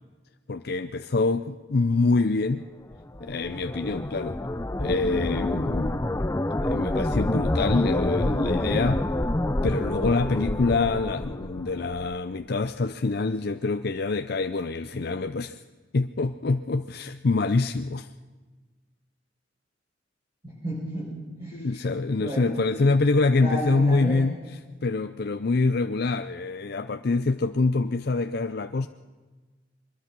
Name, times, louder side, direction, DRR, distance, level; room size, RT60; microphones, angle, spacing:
voice 1, 0.5-2.7 3.2-4.4 4.8-6.2 6.6-9.0 9.6-15.6 15.9-18.1 21.5-24.3 24.8-28.9, left 3 dB, 60° left, 8 dB, 0.6 m, -25 dB
sound 1, 2.9-12.2, left 1 dB, 15° left, 0.6 m, -27 dB
voice 2, 20.4-21.8 22.2-22.9 23.3-24.3, equal, 30° right, -5 dB, 5.9 m, -33 dB
23.5 x 21.0 x 6.1 m, 1.3 s
head